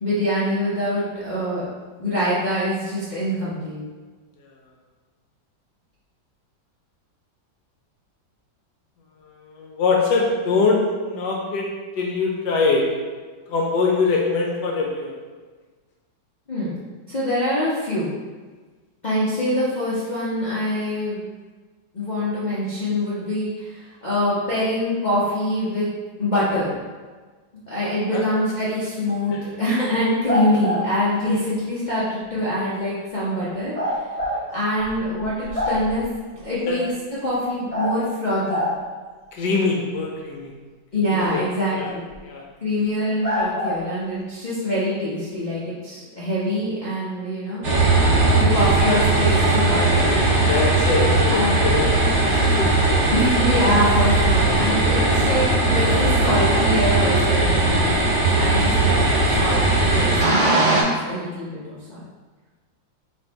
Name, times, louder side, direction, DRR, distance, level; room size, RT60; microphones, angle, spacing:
voice 1, 0.0-1.7 2.0-3.8 16.5-16.7 17.1-18.1 19.0-21.2 21.9-25.9 26.2-26.7 27.7-34.0 34.5-36.9 37.2-38.7 40.9-42.0 42.6-47.6 48.4-50.2 51.3-51.6 53.1-57.9 58.4-59.6 59.9-61.8, left 1 dB, 90° left, -10 dB, 0.4 m, -24 dB
voice 2, 9.4-11.7 11.9-12.8 13.5-15.2 28.1-28.2 29.3-29.4 31.3-31.5 34.3-34.5 36.7-36.8 39.3-40.5 41.1-41.5 41.7-41.9 42.2-42.4 50.5-51.9 52.2-52.7, left 4 dB, 75° left, -1 dB, 1.1 m, -23 dB
sound 1, 30.3-30.8 33.7-34.4 34.8-34.9 35.2-36.1 37.7-37.9 38.5-38.7 42.1-42.2 43.2-43.8, equal, 5° left, 0.9 m, -24 dB
sound 2, 47.6-60.8, right 2 dB, 60° right, 0.8 m, -18 dB
3.8 x 2.6 x 4.4 m, 1.4 s
omnidirectional pair, 2.0 m